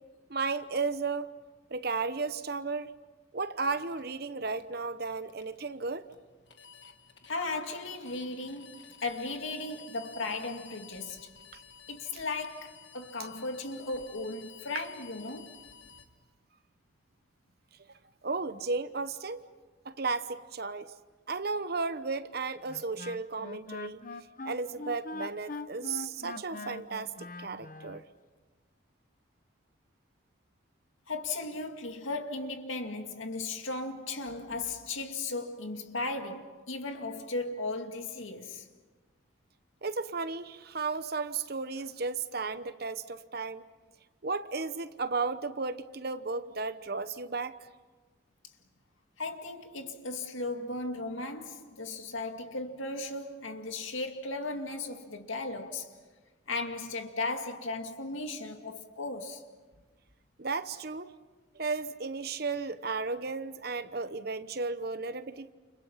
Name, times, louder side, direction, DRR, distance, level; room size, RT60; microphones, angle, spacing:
voice 1, 0.3-1.3 1.7-2.9 3.3-6.0 11.5-11.6 14.7-14.8 18.2-19.4 19.8-20.9 21.3-24.0 24.4-28.0 39.8-43.6 44.2-47.6 60.4-61.1 61.5-65.5, right 4 dB, 50° right, 1.0 m, -34 dB
sound 1, 3.6-16.0, left 7 dB, 60° left, 1.7 m, -53 dB
voice 2, 7.3-11.3 11.9-15.6 31.1-38.7 49.2-55.9 56.5-59.5, left 3 dB, 80° left, 2.3 m, -36 dB
Wind instrument woodwind instrument, 22.7-28.0, left 3 dB, 40° left, 0.8 m, -42 dB
30.0 x 29.5 x 5.8 m
head